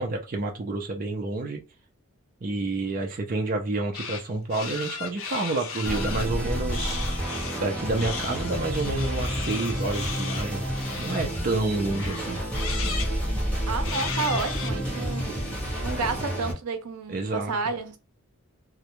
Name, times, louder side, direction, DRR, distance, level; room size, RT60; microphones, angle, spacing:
voice 1, 0.0-1.6 2.4-7.0 7.6-10.6 11.0-12.4 15.0-15.2 17.1-17.6, right 2 dB, 40° right, 0.4 m, -29 dB
sound 1, 3.9-4.2 4.5-6.3 6.7-7.6 8.0-11.6 11.9-13.1 13.8-14.7, left 6 dB, 65° left, 0.5 m, -35 dB
sound 2, 5.9-16.5, equal, 5° left, 0.8 m, -30 dB
voice 2, 13.7-15.4 15.8-18.0, right 4 dB, 90° right, 0.5 m, -31 dB
2.4 x 2.1 x 2.9 m
head